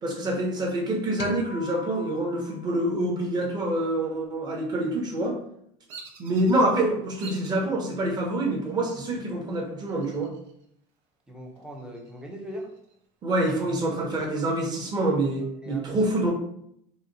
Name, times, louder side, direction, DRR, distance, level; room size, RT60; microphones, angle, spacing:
voice 1, 0.0-5.4 6.2-10.3 13.2-16.3, right 1 dB, 25° right, -1 dB, 1.0 m, -26 dB
sound 1, 1.2-3.7, left 5 dB, 70° left, 0.6 m, -42 dB
Bird vocalization bird call bird song, 5.9-6.7 7.2-7.6 8.2-8.7 9.9-10.6 11.0-11.1 11.6-13.0, right 4 dB, 80° right, 1.0 m, -46 dB
voice 2, 11.3-12.7 15.6-15.9 16.2-16.3, equal, 5° right, 0 dB, 0.7 m, -39 dB
4.1 x 2.3 x 3.9 m, 0.70 s
cardioid pair, 150°, 16 cm